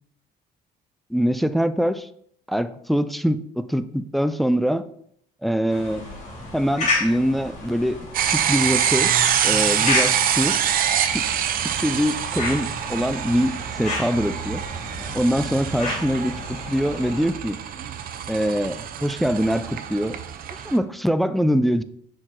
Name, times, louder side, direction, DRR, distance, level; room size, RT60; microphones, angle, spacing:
voice 1, 1.1-2.1 2.5-4.8 5.4-6.0 6.5-8.0 8.3-9.1 9.4-10.6 11.1-11.3 11.8-14.6 15.1-17.6 18.3-20.2 20.6-21.8, equal, ahead, 11 dB, 0.3 m, -23 dB
sound 1, 5.7-17.3, left 2 dB, 45° left, 2.8 m, -32 dB
sound 2, 8.1-20.8, right 9 dB, 60° right, 0.6 m, -25 dB
6.0 x 4.4 x 3.8 m, 0.67 s
cardioid pair, 110°, 17 cm